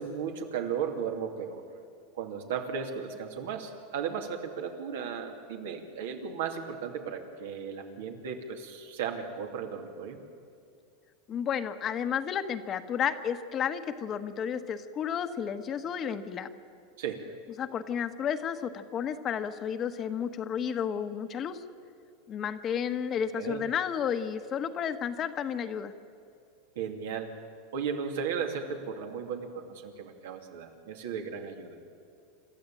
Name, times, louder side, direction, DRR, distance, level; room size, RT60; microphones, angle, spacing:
voice 1, 0.0-1.6 2.1-10.2 17.0-17.2 23.3-23.6 26.8-27.3 27.7-31.8, right 7 dB, 80° right, 3 dB, 2.6 m, -35 dB
voice 2, 11.3-16.5 17.6-21.6 22.3-25.9, left 8 dB, 30° left, 9 dB, 1.2 m, -32 dB
27.0 x 12.5 x 8.8 m, 2.4 s
supercardioid pair, 130°, 0 cm